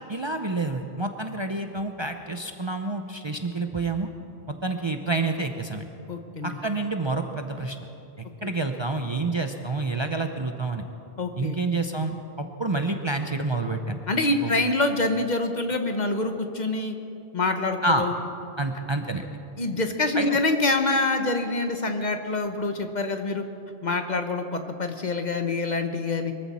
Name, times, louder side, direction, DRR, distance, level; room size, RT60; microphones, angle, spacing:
voice 1, 0.1-4.1 4.5-5.9 6.4-7.8 8.2-10.8 11.3-14.0 14.4-14.5 17.8-18.1 18.6-19.2 20.1-20.4, right 2 dB, 30° right, 5 dB, 0.7 m, -28 dB
voice 2, 6.1-6.6 11.2-11.6 14.1-17.0 17.3-18.1 19.6-23.5 23.8-26.3, left 2 dB, 45° left, 6 dB, 1.1 m, -26 dB
23.5 x 14.5 x 4.3 m, 2.8 s
omnidirectional pair, 1.1 m